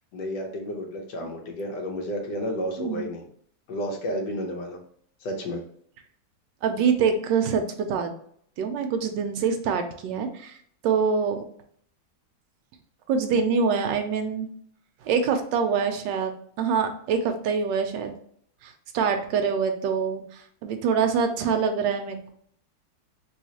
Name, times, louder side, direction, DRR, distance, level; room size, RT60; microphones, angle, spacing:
voice 1, 0.1-3.3 3.7-4.8 5.2-5.6, equal, 65° left, 2 dB, 1.3 m, -31 dB
voice 2, 2.8-3.1 6.6-8.1 8.6-10.6 10.8-11.4 13.1-14.5 15.0-16.3 16.6-18.1 18.6-22.3, right 6 dB, 75° right, 6 dB, 1.2 m, -25 dB
3.1 x 3.1 x 2.8 m, 0.62 s
omnidirectional pair, 2.1 m